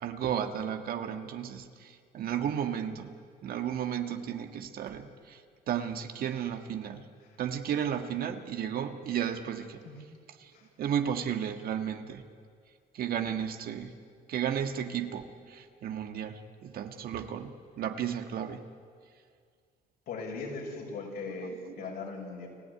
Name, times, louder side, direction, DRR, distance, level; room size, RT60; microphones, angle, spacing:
voice 1, 0.0-3.1 3.4-5.4 5.7-7.1 7.4-9.8 10.4-10.5 10.8-12.2 12.9-14.0 14.3-18.6 21.3-22.0, right 9 dB, 60° right, 6 dB, 1.7 m, -33 dB
voice 2, 20.1-22.5, left 4 dB, 70° left, 0 dB, 6.4 m, -39 dB
30.0 x 13.5 x 9.7 m, 2.1 s
cardioid pair, 110°, 17 cm